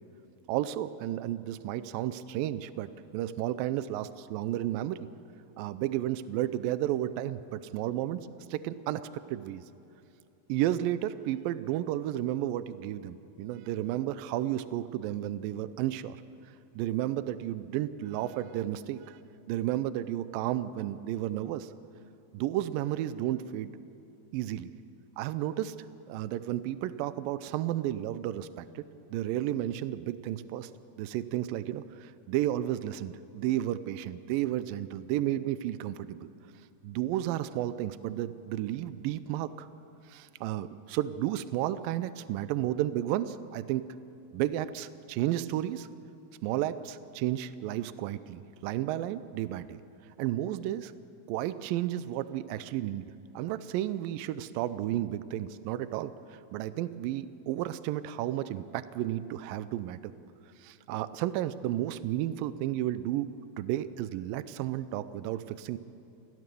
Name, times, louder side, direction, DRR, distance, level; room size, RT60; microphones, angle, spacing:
voice 1, 0.5-5.1 5.6-8.2 8.5-9.6 10.5-16.2 16.7-19.2 19.5-21.7 22.3-23.8 24.3-24.7 25.2-25.8 26.1-28.8 29.1-30.7 31.0-36.3 36.8-39.7 40.1-43.9 44.3-45.9 46.4-49.8 50.2-50.9 51.3-60.1 60.6-63.3 63.6-65.8, right 13 dB, 85° right, 14 dB, 2.0 m, -32 dB
24.5 x 16.0 x 6.9 m, 2.9 s
omnidirectional pair, 4.8 m